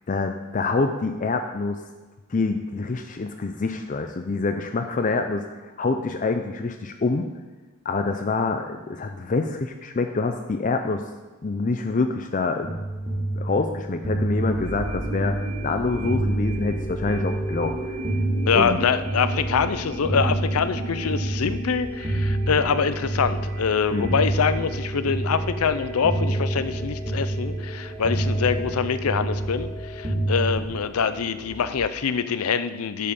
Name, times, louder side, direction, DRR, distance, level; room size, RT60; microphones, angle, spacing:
voice 1, 0.1-1.8 2.3-7.3 7.8-11.1 11.4-12.8 13.3-15.4 15.6-17.9 18.5-18.8 23.9-24.2, left 3 dB, 35° left, 6 dB, 0.4 m, -26 dB
sound 1, 12.6-30.7, right 1 dB, 25° right, 1.7 m, -28 dB
sound 2, 14.4-31.8, right 1 dB, 70° right, 1.8 m, -36 dB
voice 2, 18.5-33.1, left 6 dB, 90° left, 12 dB, 0.5 m, -25 dB
10.5 x 5.5 x 5.4 m, 1.2 s
head